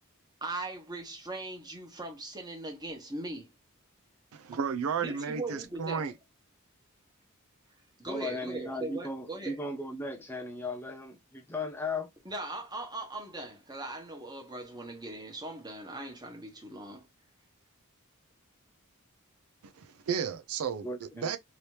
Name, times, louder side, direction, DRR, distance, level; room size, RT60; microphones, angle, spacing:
voice 1, 0.4-3.5 5.0-6.1 8.0-9.6 12.2-17.0, right 2 dB, 20° right, 1.2 m, -40 dB
voice 2, 4.3-6.1 19.6-21.4, right 6 dB, 75° right, 0.4 m, -33 dB
voice 3, 8.0-12.1 20.8-21.4, left 2 dB, 10° left, 0.3 m, -36 dB
3.0 x 2.8 x 3.1 m
head